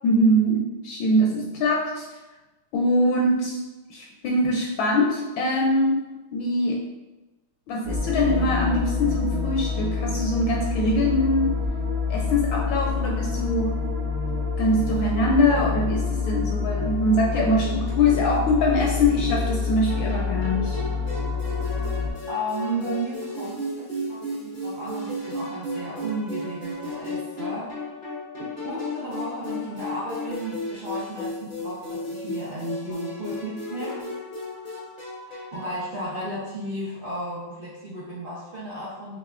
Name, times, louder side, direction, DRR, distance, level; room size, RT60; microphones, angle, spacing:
voice 1, 0.0-2.1 2.7-3.6 3.9-6.0 6.3-6.8 7.7-11.6 12.1-13.8 14.6-20.8, left 1 dB, 75° left, 0 dB, 1.2 m, -23 dB
sound 1, 7.8-22.1, left 5 dB, 70° right, 1.0 m, -27 dB
sound 2, 19.9-35.8, left 1 dB, 55° left, 0.5 m, -34 dB
voice 2, 22.3-27.8 28.4-34.0 35.3-39.2, right 1 dB, 90° right, -9 dB, 0.4 m, -34 dB
6.2 x 2.4 x 2.4 m, 1.1 s
omnidirectional pair, 2.4 m